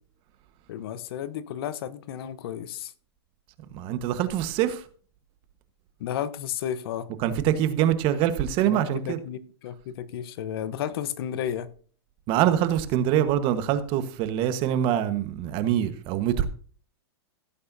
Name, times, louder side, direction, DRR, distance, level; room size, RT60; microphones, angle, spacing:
voice 1, 0.7-2.9 6.0-7.1 8.6-11.7, left 10 dB, 65° left, 1.0 m, -33 dB
voice 2, 3.7-4.8 7.2-9.2 12.3-16.5, right 11 dB, 40° right, 1.3 m, -24 dB
16.0 x 8.6 x 2.7 m
hypercardioid pair, 135°, 14 cm